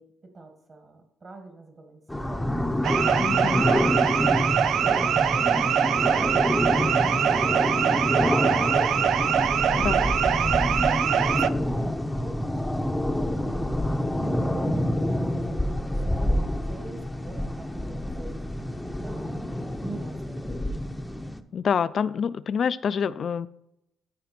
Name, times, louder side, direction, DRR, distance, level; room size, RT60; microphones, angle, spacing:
voice 1, 0.0-2.8 3.5-13.7 14.2-21.0, right 2 dB, 45° right, 3 dB, 1.9 m, -45 dB
sound 1, 2.1-21.4, left 1 dB, 5° left, 0.7 m, -27 dB
sound 2, 2.8-11.5, right 8 dB, 75° right, 0.4 m, -23 dB
voice 2, 3.2-3.6 9.8-10.0 21.5-23.5, left 7 dB, 55° left, 16 dB, 0.4 m, -26 dB
13.0 x 5.0 x 4.5 m, 0.82 s
cardioid pair, 90°, 0 cm